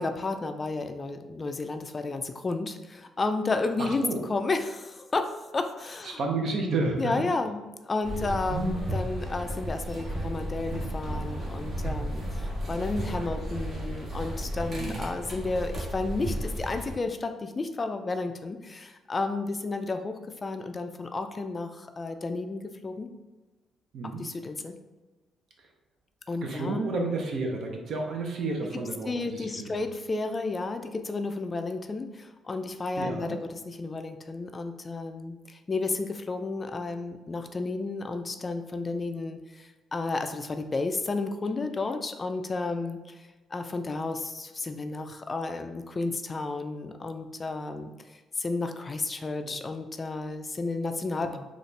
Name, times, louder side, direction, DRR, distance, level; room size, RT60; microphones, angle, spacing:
voice 1, 0.0-6.2 7.0-23.1 24.2-24.8 26.3-26.8 29.0-51.4, left 3 dB, 30° left, 7 dB, 0.3 m, -32 dB
voice 2, 3.8-4.2 6.0-7.1 8.2-8.3 8.5-8.8 14.8-15.1 23.9-24.2 26.4-29.8 33.0-33.4 51.3-51.4, right 3 dB, 65° right, 1 dB, 0.7 m, -31 dB
sound 1, 8.0-16.9, right 1 dB, 50° right, 1.0 m, -34 dB
4.1 x 2.4 x 3.2 m, 1.2 s
cardioid pair, 90°, 0 cm